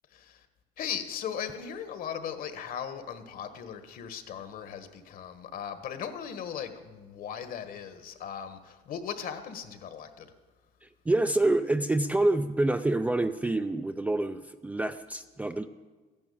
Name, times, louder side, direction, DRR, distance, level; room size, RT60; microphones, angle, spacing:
voice 1, 0.1-0.5 0.8-10.3, left 8 dB, 55° left, 9 dB, 1.5 m, -38 dB
voice 2, 10.8-15.7, right 2 dB, 10° right, 8 dB, 0.4 m, -27 dB
14.5 x 11.0 x 8.6 m, 1.3 s
cardioid pair, 155°, 17 cm